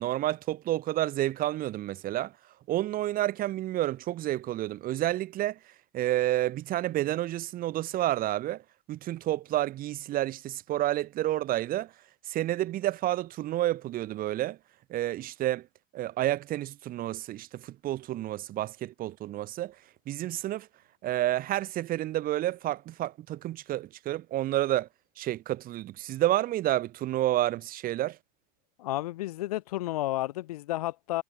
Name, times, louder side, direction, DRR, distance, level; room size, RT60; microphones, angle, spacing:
voice 1, 0.0-2.4 2.7-8.6 8.9-11.9 12.2-14.6 14.9-15.7 15.9-19.8 20.1-20.7 21.0-24.9 25.2-28.2, right 14 dB, 50° right, 4.0 m, -30 dB
voice 2, 28.8-31.2, left 16 dB, 90° left, 3.0 m, -31 dB
supercardioid pair, 105°, 19 cm